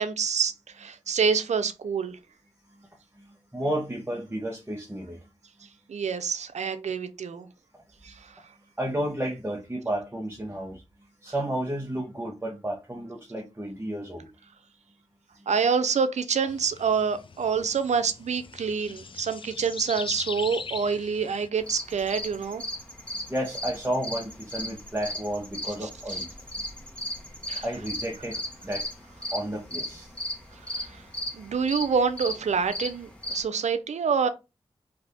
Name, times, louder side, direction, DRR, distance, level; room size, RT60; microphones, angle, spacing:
voice 1, 0.0-2.2 5.9-7.5 8.0-8.3 15.5-22.6 25.8-25.9 27.5-27.6 30.7-31.0 31.3-34.3, right 6 dB, 75° right, 0.5 m, -27 dB
voice 2, 3.2-5.2 8.8-10.8 11.2-14.3 15.4-15.5 23.3-26.3 27.6-28.9 29.3-30.1, right 1 dB, 15° right, 0.8 m, -32 dB
sound 1, 16.5-21.5, left 5 dB, 45° left, 0.3 m, -40 dB
sound 2, 21.6-33.4, left 1 dB, 10° left, 1.0 m, -36 dB
2.6 x 2.4 x 3.4 m
cardioid pair, 40°, 12 cm